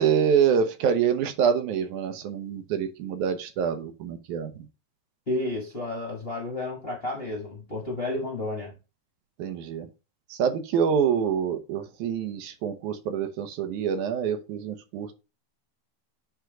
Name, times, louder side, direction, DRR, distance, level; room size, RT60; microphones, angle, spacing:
voice 1, 0.0-4.7 9.4-9.9 10.3-15.1, right 7 dB, 75° right, 2.3 m, -26 dB
voice 2, 5.3-8.7, left 2 dB, 35° left, 0.9 m, -31 dB
9.5 x 3.5 x 3.9 m
omnidirectional pair, 3.6 m